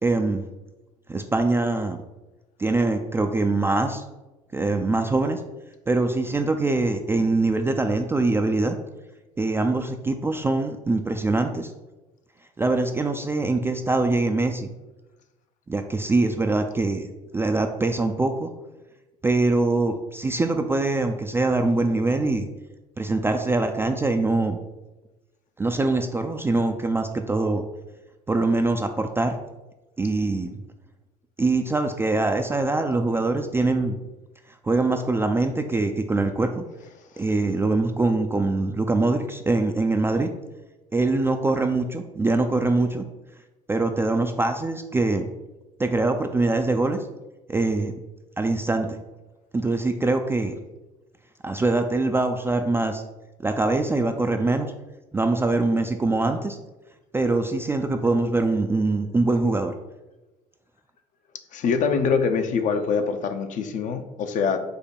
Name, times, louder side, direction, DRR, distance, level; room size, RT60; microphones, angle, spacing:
voice 1, 0.0-0.4 1.1-2.0 2.6-4.0 4.5-5.4 5.9-8.7 9.4-11.7 12.6-14.7 15.7-17.1 17.3-18.5 19.2-22.5 23.0-24.6 25.6-27.6 28.3-29.3 30.0-30.6 31.4-34.0 34.6-36.6 37.2-40.3 40.9-43.0 43.7-45.2 45.8-47.0 47.5-47.9 48.4-49.0 49.5-50.6 51.4-53.0 53.4-54.7 55.1-56.6 57.1-59.7, right 2 dB, 10° right, 5 dB, 0.3 m, -23 dB
voice 2, 61.5-64.6, left 5 dB, 40° left, 7 dB, 0.5 m, -24 dB
4.9 x 2.2 x 4.4 m, 1.1 s
figure-of-eight pair, 60°, 19 cm